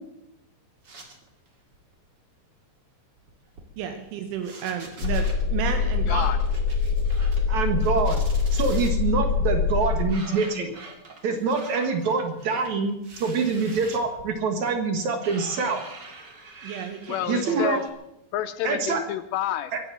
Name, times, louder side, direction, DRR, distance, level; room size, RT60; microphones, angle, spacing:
sound 1, 0.8-1.5 1.7-1.9 3.2-4.1 4.3-5.4 6.1-7.5 7.8-8.9 9.8-17.9, right 3 dB, 35° right, 1.8 m, -45 dB
voice 1, 3.8-6.3 16.6-17.7, right 8 dB, 85° right, 6 dB, 3.7 m, -32 dB
sound 2, 5.0-10.1, left 5 dB, 50° left, 3.9 m, -24 dB
voice 2, 6.1-6.4 17.1-17.8 18.3-19.7, left 12 dB, 80° left, 13 dB, 2.6 m, -29 dB
voice 3, 7.5-8.2 8.5-10.7 11.2-15.8 17.3-17.8 18.6-19.0 19.7-19.8, right 4 dB, 60° right, 6 dB, 2.0 m, -25 dB
23.5 x 8.3 x 7.5 m, 0.85 s
omnidirectional pair, 5.4 m